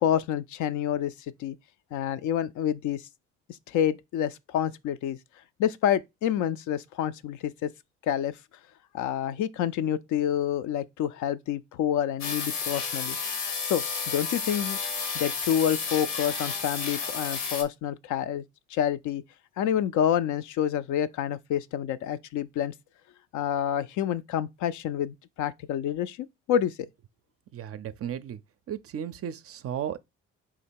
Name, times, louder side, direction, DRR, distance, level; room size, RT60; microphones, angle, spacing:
voice 1, 0.0-1.1 1.4-1.6 1.9-3.0 3.7-5.2 5.6-7.7 8.1-8.3 8.9-13.2 13.7-14.8 15.1-18.4 18.7-19.2 19.6-22.7 23.3-26.7, left 10 dB, 55° left, 0.4 m, -28 dB
sound 1, 12.2-17.6, left 5 dB, 80° left, 1.1 m, -32 dB
voice 2, 27.5-28.4 28.7-30.0, right 9 dB, 40° right, 0.5 m, -34 dB
3.8 x 2.8 x 4.4 m
hypercardioid pair, 50°, 37 cm